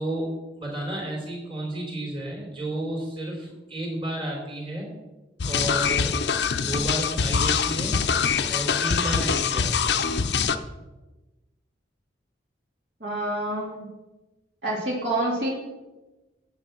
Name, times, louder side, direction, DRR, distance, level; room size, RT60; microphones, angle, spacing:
voice 1, 0.0-4.9 5.4-6.1 6.6-8.0 8.5-10.0, right 1 dB, 30° right, -1 dB, 3.4 m, -32 dB
sound 1, 5.4-10.6, left 6 dB, 65° left, 0.6 m, -24 dB
voice 2, 13.0-13.9 14.6-15.5, right 1 dB, 60° right, -4 dB, 2.9 m, -27 dB
9.0 x 8.2 x 6.0 m, 1.1 s
head